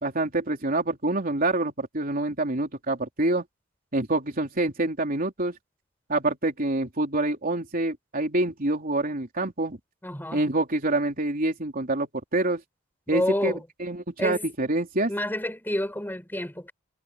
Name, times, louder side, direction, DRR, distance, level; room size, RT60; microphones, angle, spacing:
voice 1, 0.0-3.4 3.9-5.5 6.1-9.8 10.3-12.6 13.1-13.5 13.8-15.1, right 2 dB, 45° right, 3.7 m, -26 dB
voice 2, 10.0-10.4 13.1-13.6 14.2-14.5 15.1-16.7, left 1 dB, 10° left, 5.2 m, -29 dB
head